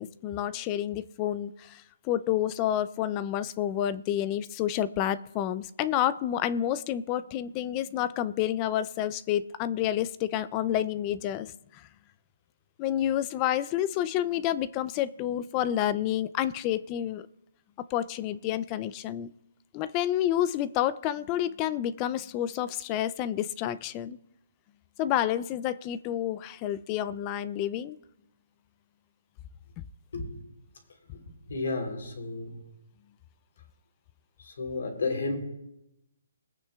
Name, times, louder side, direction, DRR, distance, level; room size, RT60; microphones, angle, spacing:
voice 1, 0.0-11.9 12.8-17.3 17.9-19.3 19.7-24.2 25.0-28.0, left 11 dB, 20° left, 16 dB, 0.3 m, -29 dB
voice 2, 31.1-32.6 34.4-35.4, left 3 dB, 65° left, 3 dB, 3.2 m, -33 dB
22.5 x 9.1 x 2.3 m, 0.89 s
hypercardioid pair, 165°, 0 cm